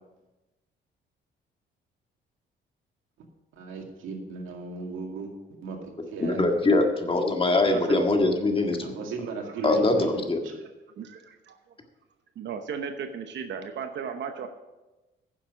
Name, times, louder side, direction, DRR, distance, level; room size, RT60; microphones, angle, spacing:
voice 1, 3.5-6.4 8.8-10.6, right 4 dB, 85° right, 2 dB, 2.2 m, -36 dB
voice 2, 6.2-8.9 9.6-10.4, left 2 dB, 25° left, 3 dB, 1.8 m, -23 dB
voice 3, 7.7-8.0 11.0-11.6 12.4-14.5, right 6 dB, 65° right, 7 dB, 1.0 m, -35 dB
10.5 x 7.3 x 6.3 m, 1.1 s
cardioid pair, 90°, 20 cm